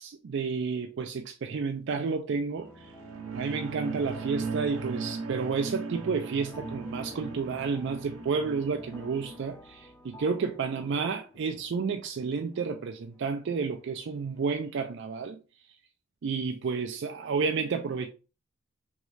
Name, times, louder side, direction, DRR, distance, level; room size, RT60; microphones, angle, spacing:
voice 1, 0.0-2.9 3.3-15.4 16.2-18.1, right 5 dB, 55° right, 0.4 m, -31 dB
sound 1, 2.6-14.5, left 1 dB, 15° left, 0.4 m, -52 dB
sound 2, 2.8-9.4, right 4 dB, 85° right, 0.7 m, -38 dB
3.6 x 3.1 x 3.1 m
head